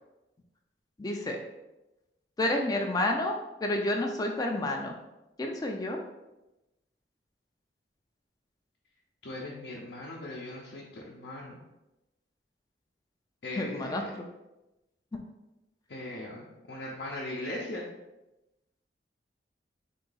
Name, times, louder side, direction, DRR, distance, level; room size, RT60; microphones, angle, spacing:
voice 1, 1.0-1.4 2.4-4.9 5.4-6.0 13.6-14.2, left 1 dB, 20° left, 2 dB, 0.4 m, -30 dB
voice 2, 9.2-11.6 13.4-14.1 15.9-17.8, left 1 dB, 70° left, -4 dB, 0.6 m, -39 dB
3.8 x 2.7 x 3.8 m, 0.97 s
head